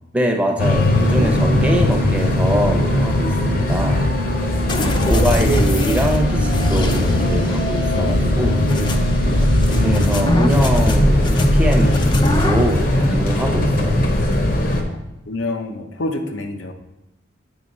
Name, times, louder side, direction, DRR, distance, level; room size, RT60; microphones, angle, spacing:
voice 1, 0.1-4.1 5.0-8.6 9.7-14.1, right 1 dB, 5° right, 2 dB, 0.7 m, -23 dB
Organ, 0.5-10.8, right 1 dB, 75° right, 0.5 m, -30 dB
sound 1, 0.6-14.8, left 1 dB, 45° left, 0.8 m, -20 dB
voice 2, 4.7-5.2 14.7-15.0 15.3-16.7, left 2 dB, 80° left, 5 dB, 0.8 m, -28 dB
sound 2, 4.7-12.7, left 1 dB, 25° left, 0.4 m, -20 dB
8.3 x 3.4 x 5.3 m, 0.92 s
head